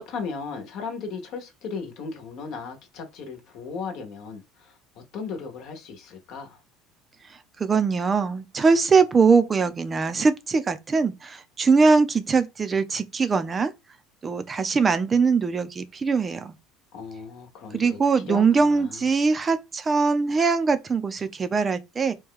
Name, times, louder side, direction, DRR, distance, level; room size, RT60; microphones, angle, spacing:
voice 1, 0.0-6.6 16.9-19.1, left 5 dB, 65° left, 1.0 m, -36 dB
voice 2, 7.6-13.7 14.2-16.5 17.7-22.1, right 4 dB, 25° right, 0.5 m, -22 dB
3.0 x 2.3 x 3.6 m
supercardioid pair, 95°, 0 cm